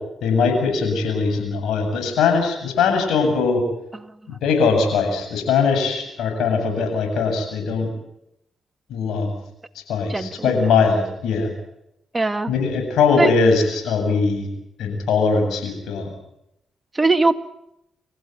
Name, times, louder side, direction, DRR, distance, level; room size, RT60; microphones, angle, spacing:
voice 1, 0.2-3.6 4.3-7.9 8.9-9.3 9.9-11.5 12.5-14.5 14.8-16.1, left 5 dB, 80° left, 5 dB, 7.9 m, -20 dB
voice 2, 10.1-10.6 12.1-12.5 13.2-13.3 16.9-17.4, right 3 dB, 25° right, 8 dB, 2.1 m, -20 dB
28.0 x 15.5 x 9.5 m, 0.80 s
supercardioid pair, 50°, 0 cm